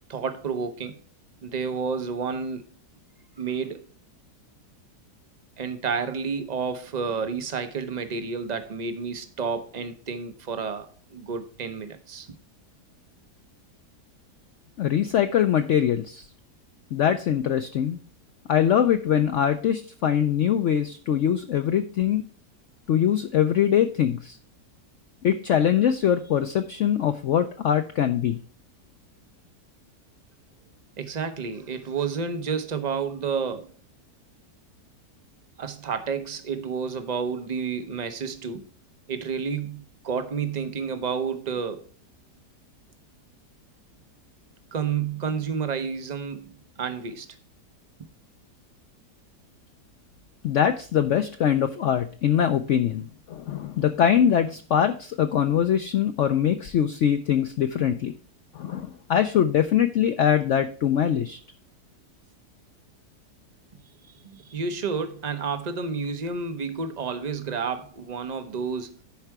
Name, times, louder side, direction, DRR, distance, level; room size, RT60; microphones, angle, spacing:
voice 1, 0.1-1.0 1.4-2.6 3.4-3.9 5.6-12.3 31.0-33.7 35.6-38.7 39.1-41.9 44.7-46.5 46.8-47.3 64.3-69.0, right 5 dB, 60° right, 0.4 m, -30 dB
voice 2, 14.8-16.2 16.9-18.0 18.5-22.2 22.9-24.4 25.2-28.4 50.4-58.1 58.6-61.4, left 9 dB, 75° left, 0.7 m, -23 dB
10.5 x 4.5 x 4.7 m
omnidirectional pair, 1.8 m